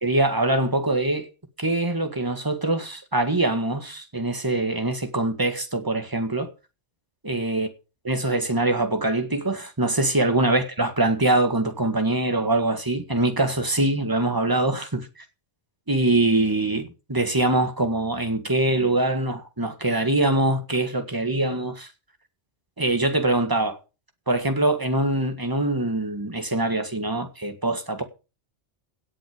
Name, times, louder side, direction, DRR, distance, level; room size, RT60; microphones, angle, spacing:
voice 1, 0.0-1.3 1.6-6.5 7.3-7.7 8.0-15.1 15.9-21.9 22.8-23.8 24.3-28.0, right 2 dB, 20° right, 1.8 m, -23 dB
17.5 x 7.8 x 5.1 m
omnidirectional pair, 1.2 m